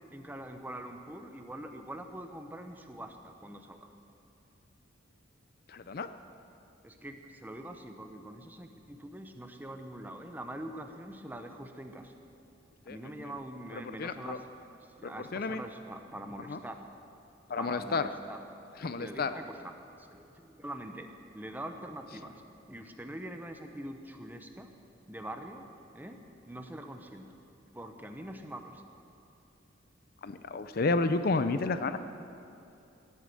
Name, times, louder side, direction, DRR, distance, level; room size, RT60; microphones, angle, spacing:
voice 1, 0.1-3.9 6.8-12.1 12.9-14.5 15.0-16.8 17.5-18.4 18.8-19.7 20.0-21.1 21.3-22.4 22.7-24.7 25.1-25.7 25.9-26.2 26.5-27.2 27.7-28.9, right 1 dB, 10° right, 5 dB, 0.8 m, -44 dB
voice 2, 5.7-6.1 12.9-13.3 13.9-14.4 15.0-15.6 16.5-16.6 17.5-18.0 18.8-19.3 30.2-32.0, left 3 dB, 50° left, 11 dB, 0.5 m, -31 dB
17.0 x 8.5 x 7.7 m, 2.7 s
head